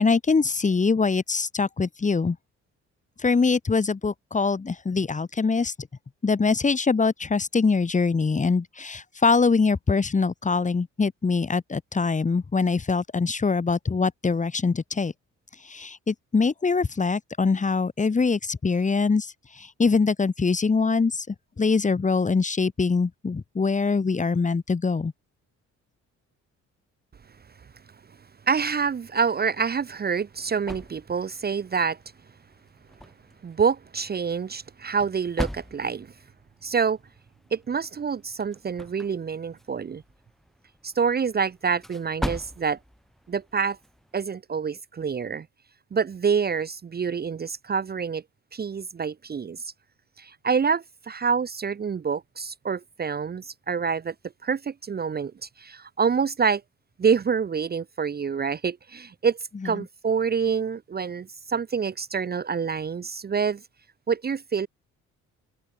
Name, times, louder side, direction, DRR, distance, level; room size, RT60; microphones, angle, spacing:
voice 1, 0.0-2.4 3.2-5.7 6.2-15.1 15.6-25.1 59.6-59.7, left 4 dB, 25° left, 1.4 m, -23 dB
voice 2, 28.5-32.0 33.4-36.1 36.6-37.0 37.5-40.0 40.8-42.8 43.3-43.8 44.1-45.5 45.9-48.2 48.5-49.7 50.2-54.1 54.4-56.6 57.0-59.4 59.6-63.6 64.1-64.7, right 6 dB, 30° right, 0.8 m, -27 dB
sound 1, 29.7-44.3, equal, ahead, 5.0 m, -41 dB
cardioid pair, 90°, 30 cm